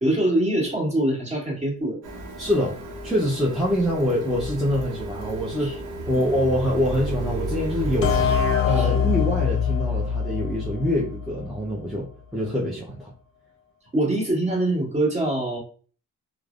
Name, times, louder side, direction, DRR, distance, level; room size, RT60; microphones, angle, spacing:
voice 1, 0.0-2.0 5.6-5.7 8.7-8.9 13.9-15.6, right 1 dB, 20° right, -3 dB, 1.4 m, -24 dB
Printer, 2.0-8.4, right 1 dB, 90° right, 0.7 m, -33 dB
voice 2, 2.4-2.8 3.0-5.8 6.1-8.2 8.6-13.1, equal, ahead, -5 dB, 0.6 m, -25 dB
sound 1, 8.0-11.6, left 6 dB, 45° left, 0.6 m, -23 dB
3.1 x 2.0 x 2.4 m, 0.40 s
cardioid pair, 90°, 30 cm